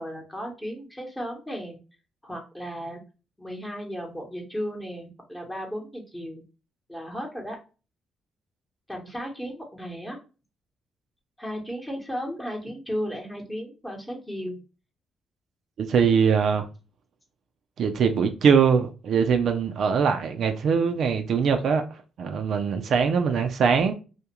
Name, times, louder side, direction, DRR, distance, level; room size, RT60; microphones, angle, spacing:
voice 1, 0.0-1.8 2.2-3.0 3.4-6.4 6.9-7.5 8.9-10.2 11.4-14.6, equal, 10° left, 0.9 m, -35 dB
voice 2, 15.8-16.7 17.8-21.8 22.2-23.9, right 6 dB, 65° right, 0.4 m, -22 dB
2.3 x 2.1 x 2.9 m
cardioid pair, 90°, 0 cm